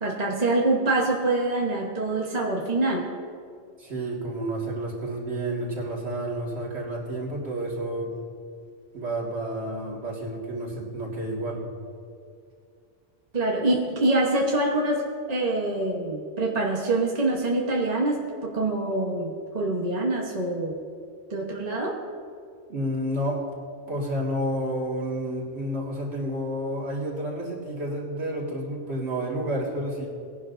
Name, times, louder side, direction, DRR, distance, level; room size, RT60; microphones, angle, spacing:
voice 1, 0.0-3.1 13.3-15.0 15.3-20.8 21.3-21.9, right 2 dB, 35° right, -2 dB, 1.2 m, -25 dB
voice 2, 3.8-8.2 8.9-11.6 22.7-23.4 23.9-30.1, right 1 dB, 60° right, -4 dB, 2.4 m, -30 dB
19.5 x 11.0 x 2.6 m, 2.3 s
omnidirectional pair, 1.3 m